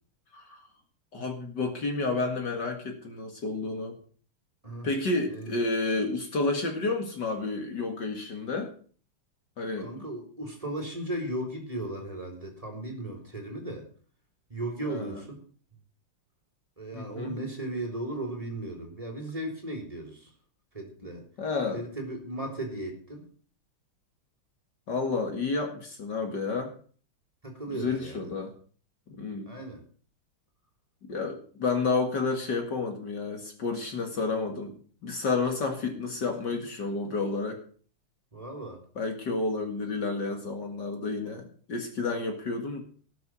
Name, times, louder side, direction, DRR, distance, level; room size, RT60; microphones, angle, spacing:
voice 1, 1.1-4.0 4.8-8.7 9.6-9.9 14.9-15.2 16.9-17.4 21.4-21.8 24.9-26.7 27.7-28.5 29.2-29.6 31.1-37.6 39.0-42.8, left 3 dB, 55° left, 4 dB, 2.5 m, -30 dB
voice 2, 9.8-13.9 14.5-15.4 16.8-20.3 20.7-21.2 21.7-23.3 27.4-28.3 29.5-29.8 38.3-38.8, right 1 dB, 15° right, 2 dB, 3.6 m, -36 dB
18.5 x 7.1 x 6.2 m, 0.43 s
omnidirectional pair, 2.3 m